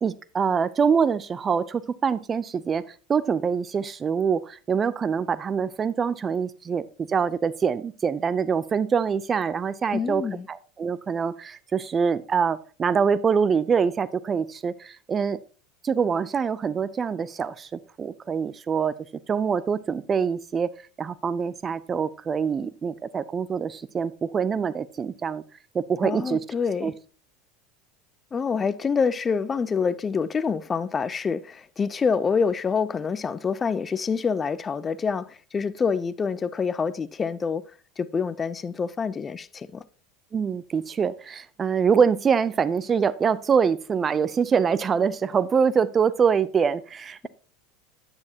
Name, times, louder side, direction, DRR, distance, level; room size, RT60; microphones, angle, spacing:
voice 1, 0.0-2.8 3.1-15.4 15.8-19.0 19.3-20.7 21.0-25.4 25.7-26.4 26.8-26.9 40.3-47.3, right 6 dB, 30° right, 0.5 m, -24 dB
voice 2, 9.9-10.5 26.0-26.9 28.3-37.6 38.0-39.8, left 5 dB, 25° left, 0.5 m, -26 dB
9.5 x 8.8 x 2.8 m
hypercardioid pair, 85°, 0 cm